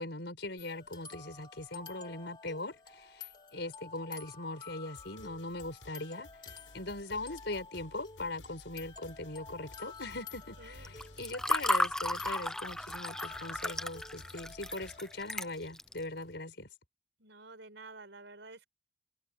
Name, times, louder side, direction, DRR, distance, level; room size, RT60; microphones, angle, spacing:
voice 1, 0.0-6.3 6.7-16.7, left 2 dB, 60° left, 5.8 m, -40 dB
sound 1, 0.6-15.5, left 5 dB, 25° left, 4.4 m, -51 dB
sound 2, 4.9-15.0, left 1 dB, 85° left, 7.7 m, -55 dB
voice 2, 10.6-10.9 17.2-18.7, right 3 dB, 65° right, 5.9 m, -50 dB
Water / Fill (with liquid), 10.9-16.0, left 1 dB, 5° left, 0.6 m, -34 dB
head